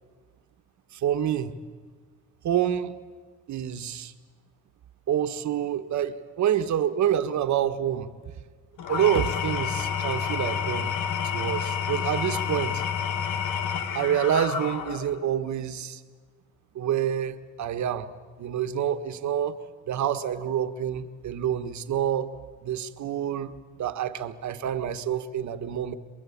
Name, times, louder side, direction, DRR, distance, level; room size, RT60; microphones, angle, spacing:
voice 1, 0.9-1.5 2.4-2.9 3.5-4.1 5.1-8.1 8.9-11.0 11.2-12.8 13.9-16.0 16.7-18.1 18.4-19.6 19.9-22.3 22.6-25.9, right 9 dB, 70° right, 9 dB, 1.5 m, -27 dB
Engine / Tools, 8.8-15.2, left 7 dB, 80° left, 1.7 m, -29 dB
27.5 x 21.5 x 8.7 m, 1.5 s
cardioid pair, 90°, 30 cm